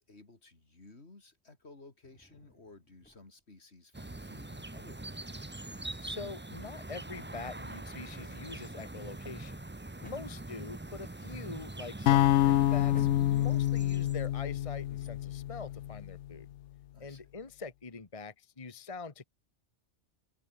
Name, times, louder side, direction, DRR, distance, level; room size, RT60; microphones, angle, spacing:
voice 1, 0.0-5.5 10.1-10.4 16.9-17.3, left 3 dB, 70° left, 3.5 m, -56 dB
Drawer open or close, 2.0-3.5 4.4-6.9 7.1-7.2 7.7-16.5, equal, 5° left, 4.0 m, -59 dB
sound 1, 3.9-14.3, right 2 dB, 10° right, 0.7 m, -43 dB
voice 2, 6.0-9.6 10.0-16.5 17.0-19.3, left 4 dB, 30° left, 1.3 m, -44 dB
sound 2, 12.1-16.2, left 13 dB, 85° left, 0.9 m, -27 dB
omnidirectional pair, 1.2 m